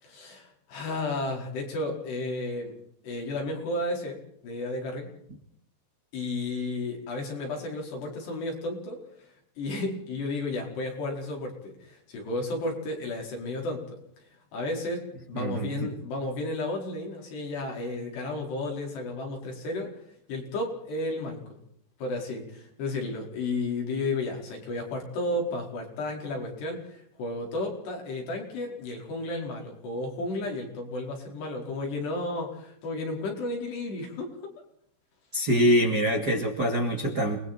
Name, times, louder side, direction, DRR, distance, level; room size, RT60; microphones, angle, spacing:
voice 1, 0.0-2.8 3.0-4.2 4.4-5.1 6.1-14.2 14.5-19.9 20.3-21.6 22.0-34.3, left 2 dB, 70° left, 0 dB, 7.0 m, -33 dB
voice 2, 15.3-15.9 35.3-37.4, equal, 30° right, 1 dB, 2.4 m, -24 dB
29.5 x 21.0 x 4.4 m, 0.71 s
omnidirectional pair, 5.0 m